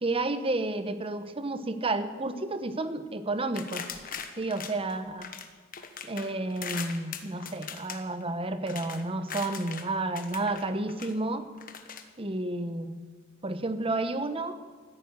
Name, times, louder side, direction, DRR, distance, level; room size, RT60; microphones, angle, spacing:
voice 1, 0.0-3.8 4.4-5.3 6.0-11.5 12.2-13.0 13.4-14.6, right 2 dB, 30° right, 10 dB, 0.9 m, -31 dB
sound 1, 3.5-5.5 5.7-9.9 10.1-11.1 11.6-12.0, left 7 dB, 45° left, 1.2 m, -40 dB
14.0 x 10.0 x 8.0 m, 1.5 s
head